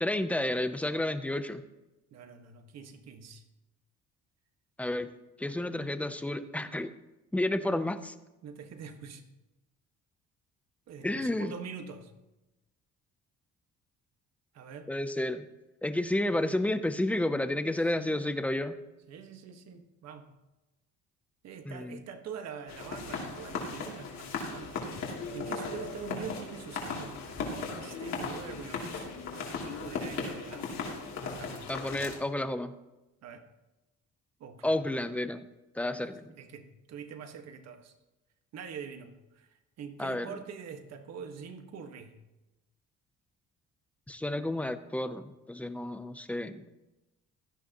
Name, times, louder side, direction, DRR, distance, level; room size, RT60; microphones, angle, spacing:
voice 1, 0.0-1.6 4.8-5.1 5.4-6.9 7.3-8.1 11.0-11.5 14.9-15.5 15.8-18.8 21.6-22.0 31.7-32.7 34.6-35.4 35.7-36.3 40.0-40.3 44.1-46.7, left 1 dB, 5° left, 10 dB, 0.6 m, -31 dB
voice 2, 2.1-3.4 8.4-9.2 10.9-12.1 14.5-14.9 17.6-18.3 19.1-20.3 21.4-24.8 25.1-29.1 29.4-30.7 31.3-31.8 33.2-33.4 34.4-34.8 36.0-37.9 38.5-42.1, right 6 dB, 60° right, 6 dB, 1.5 m, -45 dB
sound 1, 22.7-32.2, left 4 dB, 65° left, 2.9 m, -37 dB
16.5 x 12.5 x 3.0 m, 0.99 s
cardioid pair, 150°, 30 cm